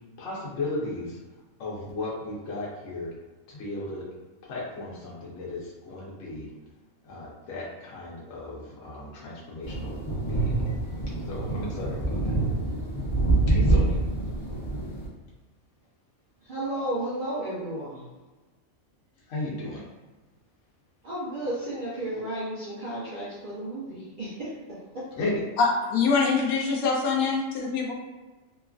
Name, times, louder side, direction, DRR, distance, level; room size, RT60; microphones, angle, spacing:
voice 1, 0.2-1.2 1.6-3.1 3.5-4.1 4.5-6.5 7.1-10.9 11.3-12.2 13.5-14.0 19.3-19.8 25.2-25.4, left 2 dB, 65° left, -5 dB, 1.0 m, -35 dB
sound 1, 9.6-15.1, right 2 dB, 40° left, 0.4 m, -26 dB
voice 2, 16.4-18.0 21.0-25.0, right 1 dB, 60° right, -8 dB, 0.5 m, -33 dB
voice 3, 25.6-27.9, left 4 dB, 90° left, 0 dB, 1.1 m, -24 dB
3.0 x 2.4 x 2.3 m, 1.2 s
omnidirectional pair, 1.5 m